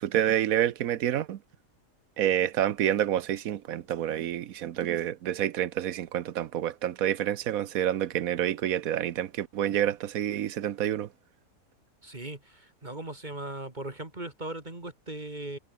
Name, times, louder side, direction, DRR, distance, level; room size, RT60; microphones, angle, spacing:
voice 1, 0.0-1.4 2.2-11.1, right 11 dB, 75° right, 1.2 m, -28 dB
voice 2, 12.0-15.6, right 2 dB, 30° right, 2.7 m, -38 dB
omnidirectional pair, 1.5 m